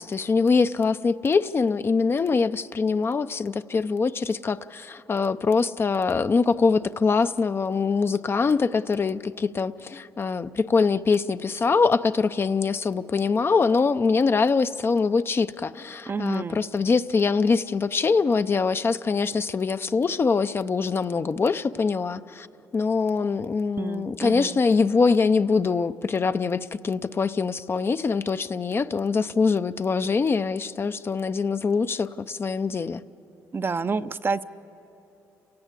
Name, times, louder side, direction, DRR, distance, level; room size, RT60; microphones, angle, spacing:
voice 1, 0.0-22.5 22.7-33.0, left 4 dB, 35° left, 11 dB, 0.6 m, -23 dB
voice 2, 16.1-16.6 23.8-24.6 33.5-34.4, right 4 dB, 30° right, 12 dB, 0.6 m, -29 dB
30.0 x 17.5 x 8.3 m, 3.0 s
cardioid pair, 85°, 7 cm